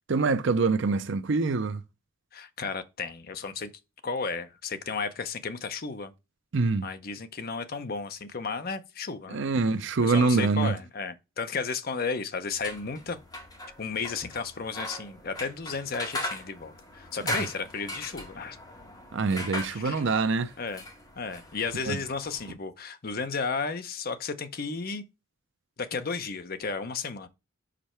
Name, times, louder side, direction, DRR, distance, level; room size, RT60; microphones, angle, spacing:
voice 1, 0.1-1.8 6.5-6.9 9.3-10.7 17.2-17.3 19.1-20.5 21.9-22.0, right 4 dB, 60° right, 0.5 m, -25 dB
voice 2, 2.3-3.7 4.0-6.1 6.8-9.4 10.0-13.2 13.8-18.6 19.7-20.0 20.6-20.8 21.2-25.0 25.8-27.3, left 4 dB, 45° left, 0.7 m, -33 dB
sound 1, 12.5-22.5, left 1 dB, 20° left, 2.0 m, -39 dB
5.5 x 5.0 x 4.4 m
head